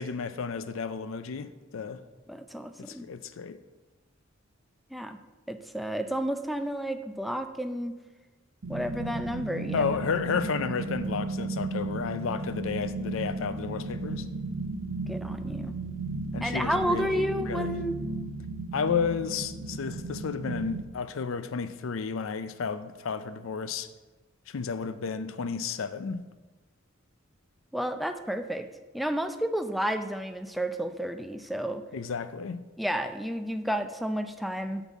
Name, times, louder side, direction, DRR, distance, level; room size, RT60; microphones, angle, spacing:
voice 1, 0.0-2.0 2.8-3.6 9.7-14.3 16.3-17.8 18.7-23.9 24.5-26.3 31.9-32.6, left 5 dB, 75° left, 0.5 m, -32 dB
voice 2, 2.3-3.1 4.9-5.2 5.5-8.0 8.7-9.9 10.3-10.5 15.1-15.7 16.4-18.0 27.7-28.7 28.9-31.8 32.8-34.8, equal, ahead, 0.4 m, -31 dB
sound 1, 8.6-20.8, right 3 dB, 70° right, 0.6 m, -35 dB
9.2 x 4.0 x 7.2 m
head